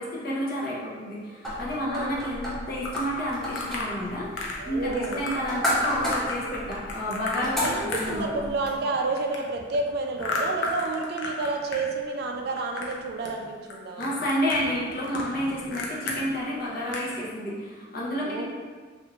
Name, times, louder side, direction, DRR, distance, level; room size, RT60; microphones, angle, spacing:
voice 1, 0.0-8.4 14.0-18.4, equal, 50° left, -5 dB, 0.8 m, -30 dB
sound 1, 1.4-8.8, equal, ahead, 0.6 m, -33 dB
sound 2, 2.9-3.9 4.4-4.7 4.9-5.4 5.8-8.6 8.9-11.8 12.1-13.0 13.2-13.7 14.0-16.2 16.6-16.7 16.9-17.1, left 3 dB, 80° left, 0.6 m, -33 dB
voice 2, 4.6-5.2 7.4-14.0 18.1-18.4, right 3 dB, 55° right, 2 dB, 0.4 m, -30 dB
3.3 x 2.6 x 2.9 m, 1.5 s
head